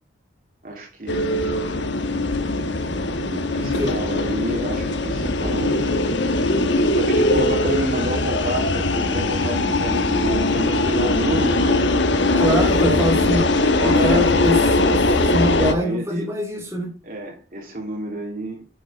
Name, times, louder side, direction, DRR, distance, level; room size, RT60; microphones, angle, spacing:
voice 1, 0.6-1.4 3.1-5.9 6.8-11.6 12.3-13.1 13.8-14.3 15.6-16.3 17.0-18.6, right 1 dB, 50° right, 3.1 m, -29 dB
sound 1, 1.1-15.7, left 2 dB, 80° left, 1.2 m, -20 dB
voice 2, 3.6-3.9 12.4-13.4 13.8-15.0 15.3-16.9, equal, 15° right, 3.2 m, -23 dB
9.5 x 6.9 x 4.0 m
head